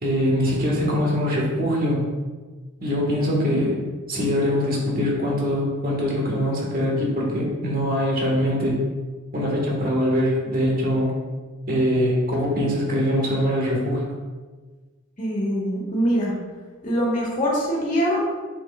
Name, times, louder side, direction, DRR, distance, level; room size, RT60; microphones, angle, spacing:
voice 1, 0.0-2.0 2.8-3.8 4.1-8.8 9.3-11.1 11.7-14.0, equal, 45° right, -3 dB, 1.8 m, -23 dB
voice 2, 15.2-16.3 16.8-18.4, equal, 40° left, -4 dB, 1.8 m, -23 dB
7.5 x 6.3 x 2.5 m, 1.3 s
head